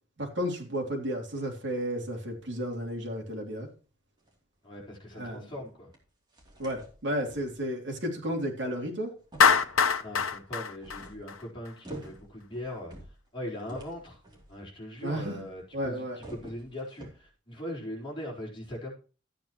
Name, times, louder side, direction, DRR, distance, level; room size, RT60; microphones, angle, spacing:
voice 1, 0.2-3.7 5.1-5.5 6.6-9.1 15.0-15.4 15.7-16.2, equal, 65° right, 0 dB, 3.3 m, -33 dB
sound 1, 2.3-3.1 3.6-3.8 4.2-4.3 4.7-4.8 5.9-6.0 6.3-7.6 8.6-8.7 9.2-15.7 16.0-17.3, right 1 dB, 20° right, 3.1 m, -48 dB
voice 2, 4.6-5.9 10.0-12.9 13.3-14.2 14.5-18.9, left 1 dB, 25° left, -3 dB, 4.3 m, -40 dB
Clapping, 9.4-11.7, left 6 dB, 85° left, 0.9 m, -24 dB
14.0 x 8.7 x 3.1 m, 0.36 s
head